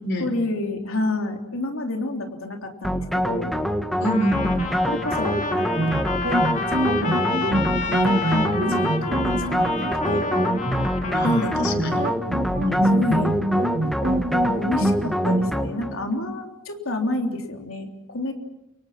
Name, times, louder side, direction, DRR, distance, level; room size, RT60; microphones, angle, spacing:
voice 1, 0.2-3.5 4.9-5.9 6.5-7.6 7.9-9.3 9.6-10.3 11.2-12.1 12.9-13.4 14.4-18.3, left 1 dB, 75° left, 3 dB, 3.6 m, -29 dB
sound 1, 2.8-16.0, equal, ahead, 1.8 m, -25 dB
voice 2, 4.0-4.7 11.1-12.0 12.6-12.9, equal, 55° left, 6 dB, 5.1 m, -26 dB
Trumpet, 4.0-11.8, left 4 dB, 35° left, 2.4 m, -30 dB
sound 2, 5.8-15.5, right 1 dB, 40° right, 1.5 m, -25 dB
29.0 x 25.5 x 5.9 m, 0.90 s
head